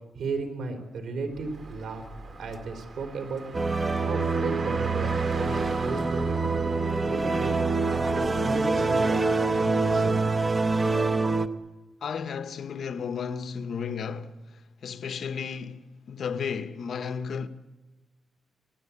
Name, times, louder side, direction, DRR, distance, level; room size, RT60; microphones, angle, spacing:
voice 1, 0.1-2.0 2.4-3.4 3.9-6.4 7.1-7.5 7.9-10.2, right 4 dB, 85° right, 3.8 m, -34 dB
Car, 1.3-9.8, right 3 dB, 45° right, 2.1 m, -41 dB
sound 1, 3.5-11.5, right 3 dB, 25° right, 0.9 m, -25 dB
voice 2, 12.0-17.5, left 6 dB, 60° left, 1.1 m, -34 dB
27.0 x 17.5 x 8.5 m
wide cardioid pair, 145°, 0 cm